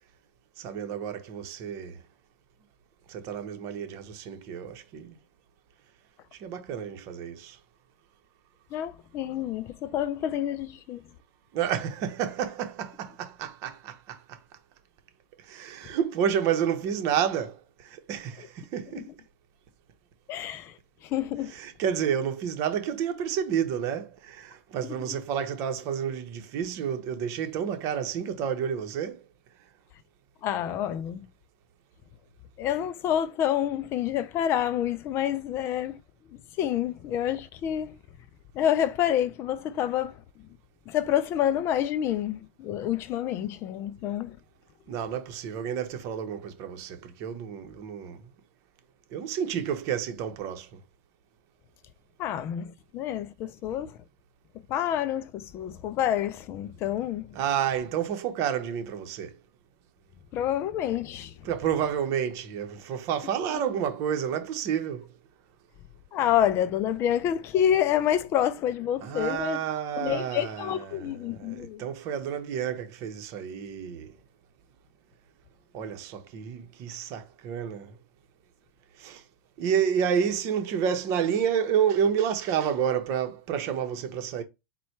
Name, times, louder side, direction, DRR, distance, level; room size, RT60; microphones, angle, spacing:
voice 1, 0.6-2.0 3.1-5.2 6.4-7.6 11.5-14.4 15.4-19.1 21.5-29.2 44.9-48.2 49.1-50.8 57.3-59.4 61.4-65.1 69.0-74.1 75.7-78.0 79.0-79.2 79.6-84.4, right 8 dB, 50° right, 0.9 m, -30 dB
voice 2, 8.7-11.1 20.3-21.5 24.8-24.9 30.4-31.3 32.6-36.0 36.3-38.0 38.5-40.2 40.9-44.4 52.2-54.0 54.7-57.4 60.3-61.4 66.1-69.6 70.0-71.8, left 10 dB, 40° left, 0.4 m, -28 dB
4.2 x 2.3 x 4.4 m
supercardioid pair, 130°, 7 cm